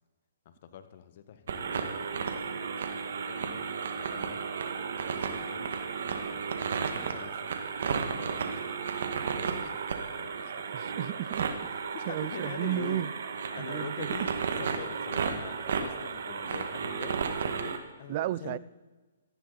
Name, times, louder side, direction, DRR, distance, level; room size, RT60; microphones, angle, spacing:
voice 1, 0.4-2.5 3.3-3.6 3.9-4.4 5.2-6.5 6.9-7.6 7.9-8.7 9.3-9.8 10.1-10.7 11.9-13.1 13.5-14.3 14.6-18.6, left 9 dB, 50° left, 11 dB, 1.5 m, -45 dB
sound 1, 1.5-17.8, right 6 dB, 65° right, 1.8 m, -33 dB
voice 2, 10.7-11.5 12.1-13.1 13.6-14.1 18.1-18.6, right 13 dB, 40° right, 19 dB, 0.5 m, -33 dB
18.0 x 14.5 x 4.1 m, 1.2 s
hypercardioid pair, 140°, 0 cm